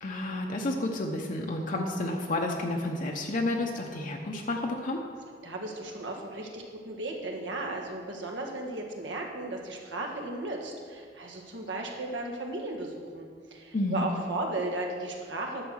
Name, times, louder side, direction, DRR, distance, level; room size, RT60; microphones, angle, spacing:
voice 1, 0.0-5.0 13.7-14.0, left 2 dB, 45° left, 1 dB, 0.9 m, -30 dB
voice 2, 5.4-15.6, right 2 dB, 85° right, 0 dB, 1.6 m, -35 dB
11.0 x 6.8 x 6.4 m, 2.1 s
head